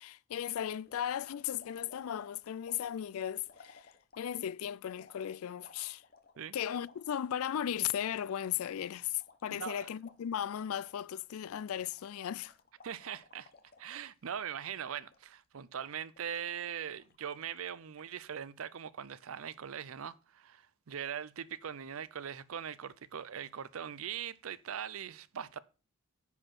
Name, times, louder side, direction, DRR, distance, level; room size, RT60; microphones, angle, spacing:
voice 1, 0.0-3.9 4.2-6.0 6.5-12.5, left 10 dB, 80° left, 0.3 m, -36 dB
sound 1, 0.8-4.4 4.9-7.5 7.8-7.9 8.1-11.1 11.3-11.6 11.9-14.4 14.9-15.4 15.8-16.5 17.0-17.6 18.0-18.5, left 4 dB, 45° left, 1.0 m, -60 dB
voice 2, 9.5-9.9 12.8-13.5 13.8-25.6, right 8 dB, 70° right, 0.5 m, -41 dB
10.0 x 4.4 x 5.9 m
head